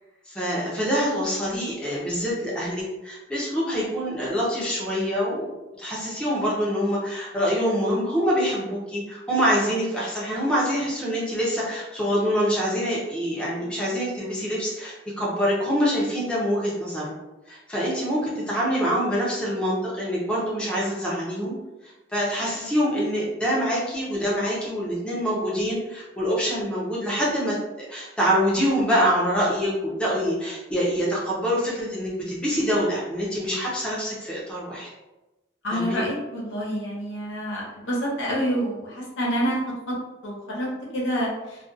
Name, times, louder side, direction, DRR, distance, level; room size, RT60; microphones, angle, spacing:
voice 1, 0.3-17.1 17.5-21.5 21.8-27.5 27.9-34.9 35.7-36.1, equal, 5° left, -6 dB, 0.5 m, -25 dB
voice 2, 35.6-39.6 39.9-40.0 40.2-40.7 40.9-41.6, equal, 85° left, -5 dB, 0.8 m, -27 dB
2.4 x 2.2 x 2.6 m, 1.0 s
head